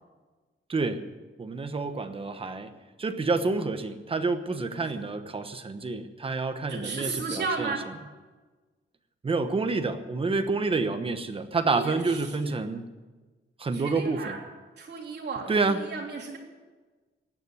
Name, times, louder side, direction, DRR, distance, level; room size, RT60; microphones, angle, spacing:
voice 1, 0.7-1.1 1.4-7.7 9.2-12.9 13.6-14.4 15.5-15.9, right 3 dB, 25° right, 8 dB, 1.1 m, -28 dB
voice 2, 6.7-7.8 11.7-12.0 12.4-12.5 13.7-14.4 14.8-16.4, right 4 dB, 55° right, 0 dB, 3.5 m, -34 dB
16.0 x 9.7 x 9.4 m, 1.3 s
wide cardioid pair, 165°, 21 cm